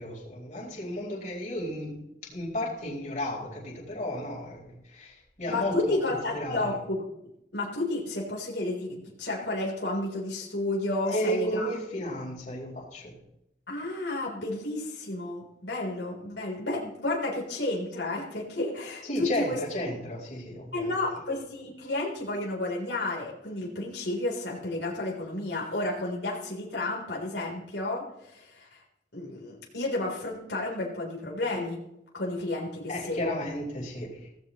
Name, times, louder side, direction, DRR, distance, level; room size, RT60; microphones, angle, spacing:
voice 1, 0.0-6.8 11.0-13.1 19.0-21.2 32.9-34.3, equal, 45° left, -3 dB, 4.4 m, -33 dB
voice 2, 5.5-7.0 7.5-11.7 13.7-19.0 19.4-19.6 20.7-28.8 29.1-31.8 32.1-33.4, left 2 dB, 85° left, -3 dB, 3.7 m, -31 dB
17.5 x 16.0 x 3.1 m, 0.85 s
head